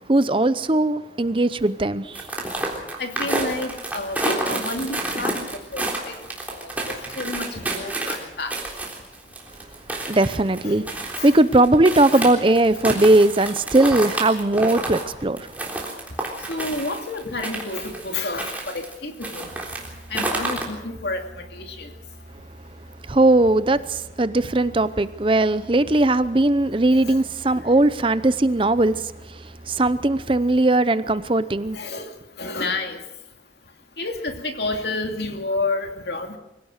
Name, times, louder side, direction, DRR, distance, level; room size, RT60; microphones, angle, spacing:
voice 1, 0.1-2.5 10.1-10.8 11.2-15.5 23.0-31.8, right 2 dB, 30° right, 0.6 m, -19 dB
sound 1, 2.1-18.9 19.2-20.6, right 2 dB, 10° right, 3.6 m, -29 dB
voice 2, 3.0-6.1 6.5-8.6 10.6-10.8 11.2-11.3 12.1-12.3 16.4-19.5 20.1-21.9 26.9-27.2 27.6-27.7 31.7-33.0 34.0-36.4, left 2 dB, 70° left, 2.6 m, -30 dB
sound 2, 19.5-30.9, right 1 dB, 45° right, 2.1 m, -45 dB
24.5 x 16.5 x 6.6 m
head